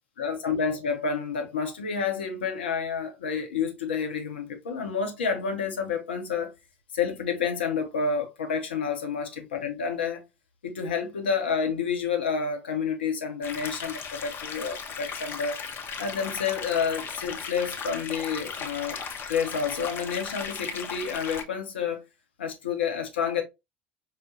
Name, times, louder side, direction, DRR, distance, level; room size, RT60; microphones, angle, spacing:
voice 1, 0.2-6.5 6.9-10.2 10.6-15.6 16.0-19.0 19.3-22.0 22.4-23.4, left 6 dB, 75° left, 0.7 m, -29 dB
sound 1, 13.4-21.4, left 6 dB, 40° left, 0.6 m, -36 dB
4.7 x 2.1 x 2.5 m
figure-of-eight pair, 70°, 6 cm